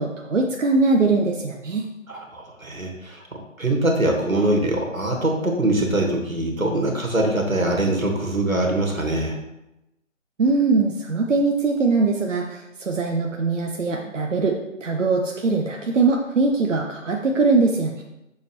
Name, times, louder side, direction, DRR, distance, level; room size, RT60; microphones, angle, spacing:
voice 1, 0.0-1.9 10.4-18.0, right 3 dB, 65° right, 1 dB, 0.9 m, -21 dB
voice 2, 2.1-3.2 3.6-9.4, right 1 dB, 90° right, 1 dB, 2.1 m, -23 dB
6.9 x 6.7 x 3.3 m, 0.91 s
figure-of-eight pair, 145°, 40 cm